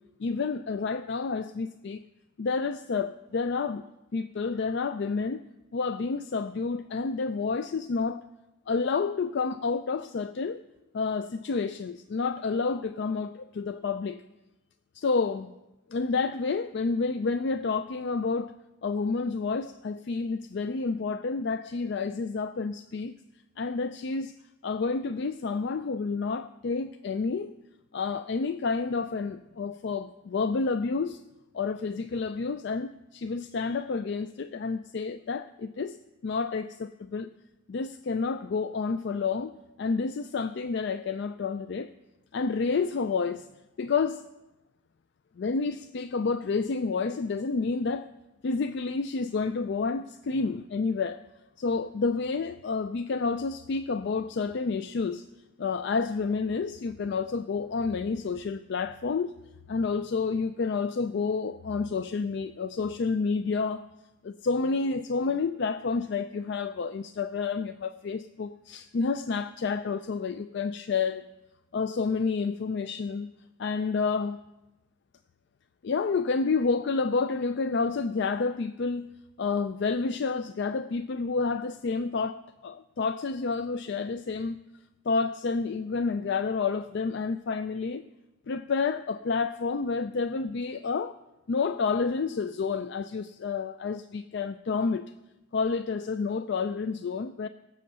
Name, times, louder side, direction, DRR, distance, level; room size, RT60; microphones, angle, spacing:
voice 1, 0.2-2.0 2.4-3.8 4.1-5.4 5.7-8.2 8.7-10.6 10.9-14.2 14.9-15.5 15.9-18.5 18.8-23.2 23.6-24.3 24.6-27.5 27.9-31.2 31.5-36.0 36.2-37.3 37.7-39.5 39.8-41.9 42.3-43.5 43.8-44.2 45.4-48.1 48.4-51.2 51.6-55.3 55.6-59.3 59.7-63.9 64.2-71.2 71.7-73.3 73.6-74.4 75.8-79.1 79.4-84.6 85.1-88.0 88.5-91.1 91.5-95.0 95.5-97.5, left 4 dB, 55° left, 0.4 m, -29 dB
17.0 x 7.6 x 6.8 m
head